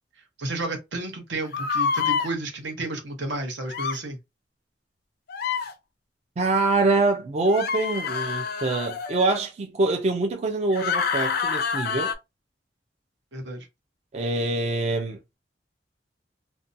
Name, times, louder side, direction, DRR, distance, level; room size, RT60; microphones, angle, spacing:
voice 1, 0.4-4.2 13.3-13.7, right 2 dB, 85° right, 0.9 m, -32 dB
sound 1, 1.5-2.3 3.7-4.0 5.3-5.7 7.5-9.4 10.7-12.1, left 6 dB, 60° left, 0.4 m, -27 dB
voice 2, 6.4-12.1 14.1-15.2, right 3 dB, 35° right, 0.4 m, -24 dB
2.6 x 2.1 x 2.6 m
head